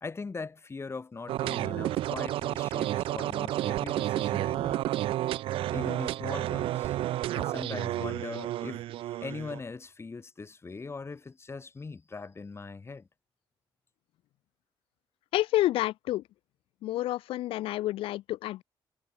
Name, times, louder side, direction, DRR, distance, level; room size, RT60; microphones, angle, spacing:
voice 1, 0.0-4.8 5.7-7.0 7.3-13.1, left 4 dB, 30° left, 2.4 m, -41 dB
sound 1, 1.3-9.6, right 14 dB, 80° right, 0.6 m, -31 dB
voice 2, 15.3-16.2 16.8-18.6, left 15 dB, 85° left, 0.7 m, -29 dB
cardioid pair, 90°, 9 cm